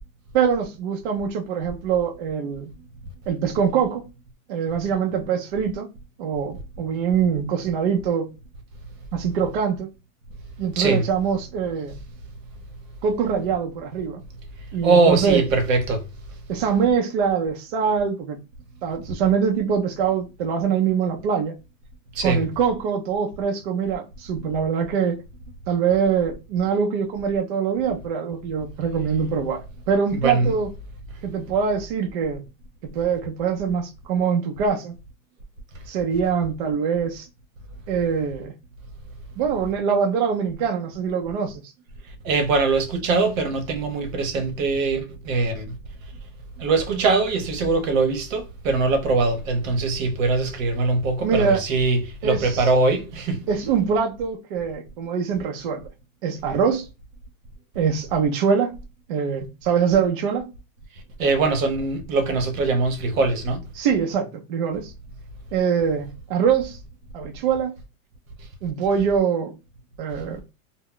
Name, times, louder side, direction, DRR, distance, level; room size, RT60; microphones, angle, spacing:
voice 1, 0.3-2.7 3.3-4.0 4.5-5.9 6.2-8.3 9.1-9.9 10.6-12.0 13.0-14.2 14.7-15.4 16.5-18.4 18.8-21.5 22.2-25.2 25.7-29.6 29.9-30.7 31.2-32.4 32.9-34.9 35.9-37.3 37.9-38.5 39.4-41.6 51.2-51.6 52.2-52.7 53.5-55.8 56.2-56.9 57.8-58.7 59.1-60.5 63.7-64.9 65.5-66.8 67.1-67.7 68.6-69.5 70.0-70.4, right 6 dB, 40° right, 0.4 m, -23 dB
voice 2, 14.8-16.0 22.1-22.4 30.1-30.5 42.2-45.8 46.6-53.4 61.2-63.6, right 3 dB, 70° right, 0.8 m, -22 dB
2.1 x 2.0 x 3.6 m
supercardioid pair, 155°, 42 cm